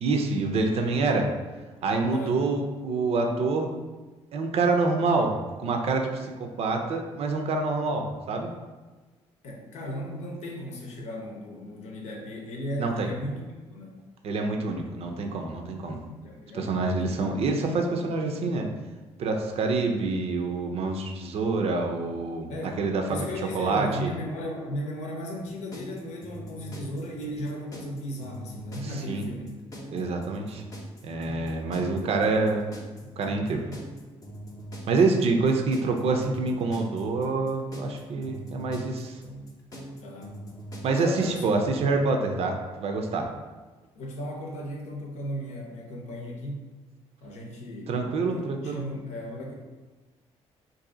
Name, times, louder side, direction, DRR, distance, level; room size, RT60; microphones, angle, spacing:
voice 1, 0.0-1.3 1.8-3.7 4.3-8.5 12.8-13.1 14.2-16.0 16.5-18.7 19.2-22.5 22.8-23.2 23.5-24.1 28.8-29.2 29.9-30.6 31.0-32.7 33.2-33.7 34.9-39.2 40.8-43.3 47.9-48.8, right 3 dB, 60° right, 3 dB, 0.5 m, -26 dB
voice 2, 2.1-2.4 9.4-13.4 13.7-14.0 16.2-17.2 22.5-22.8 23.1-29.6 40.0-40.4 41.0-41.4 43.9-46.7 47.2-47.9 48.3-49.5, equal, 80° left, 0 dB, 0.7 m, -36 dB
sound 1, 25.4-41.3, right 1 dB, 30° left, 0.7 m, -42 dB
2.7 x 2.6 x 3.8 m, 1.3 s
cardioid pair, 85°, 12 cm